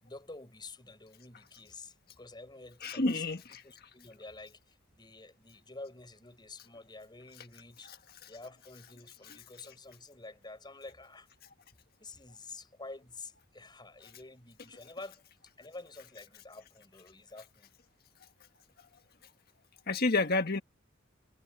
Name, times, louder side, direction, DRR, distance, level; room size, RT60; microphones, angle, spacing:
voice 1, 0.0-8.0 8.3-11.3 12.0-15.2 15.6-17.7, left 3 dB, 20° left, 5.1 m, -49 dB
voice 2, 2.8-3.6 19.9-20.6, left 3 dB, 50° left, 1.6 m, -29 dB
head